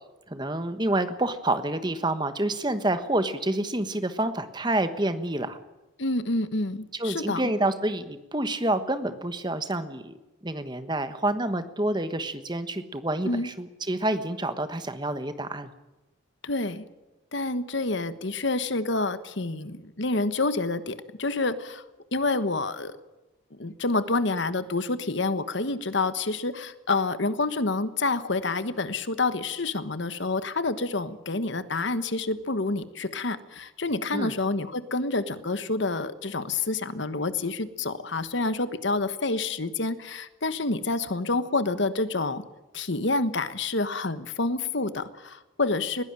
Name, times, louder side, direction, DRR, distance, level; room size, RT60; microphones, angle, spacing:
voice 1, 0.3-5.6 6.9-10.1 10.4-15.7 34.1-34.3, right 1 dB, 20° right, 10 dB, 1.3 m, -28 dB
voice 2, 6.0-7.4 13.2-13.5 16.4-16.8 17.3-21.8 22.1-22.9 23.6-42.4 42.7-46.0, left 3 dB, 65° left, 13 dB, 1.3 m, -28 dB
21.0 x 16.5 x 9.0 m, 1.1 s
head